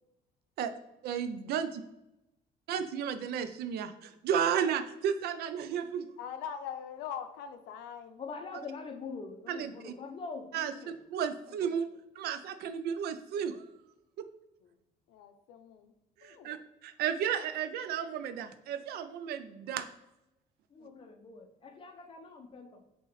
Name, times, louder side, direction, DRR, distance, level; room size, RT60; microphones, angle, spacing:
voice 1, 1.0-1.8 2.7-6.1 9.5-9.9 10.5-11.9 12.2-13.7 14.2-14.3 16.2-16.6 16.8-19.9, right 8 dB, 70° right, 10 dB, 0.4 m, -33 dB
voice 2, 6.2-8.2 11.6-11.7 15.1-15.9 16.2-16.5 20.8-20.9, left 8 dB, 90° left, 8 dB, 0.5 m, -42 dB
voice 3, 8.2-10.9 20.7-22.8, left 4 dB, 30° left, 4 dB, 0.7 m, -44 dB
5.4 x 3.0 x 3.1 m, 0.92 s
cardioid pair, 110°, 17 cm